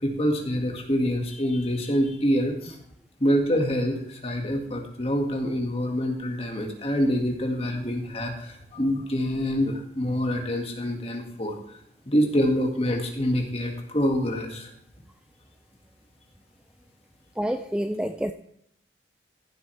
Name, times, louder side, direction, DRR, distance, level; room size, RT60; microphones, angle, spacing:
voice 1, 0.0-2.7 3.2-11.6 12.1-14.7, equal, 35° left, 2 dB, 1.8 m, -26 dB
voice 2, 17.4-18.3, equal, 5° right, 7 dB, 0.3 m, -28 dB
14.5 x 8.0 x 3.3 m, 0.75 s
head